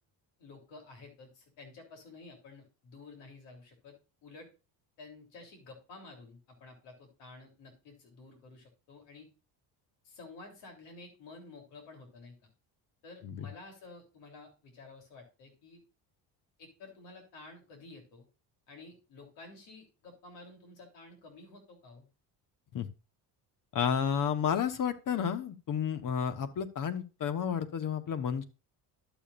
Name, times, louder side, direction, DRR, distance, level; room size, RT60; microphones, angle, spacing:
voice 1, 0.4-4.0 4.2-4.5 5.0-9.3 10.0-12.4 13.0-15.8 16.6-18.3 18.7-22.1, left 3 dB, 75° left, 3 dB, 3.5 m, -51 dB
voice 2, 23.7-28.4, left 8 dB, 45° left, 11 dB, 1.2 m, -31 dB
12.0 x 7.1 x 2.5 m, 0.32 s
cardioid pair, 110°, 43 cm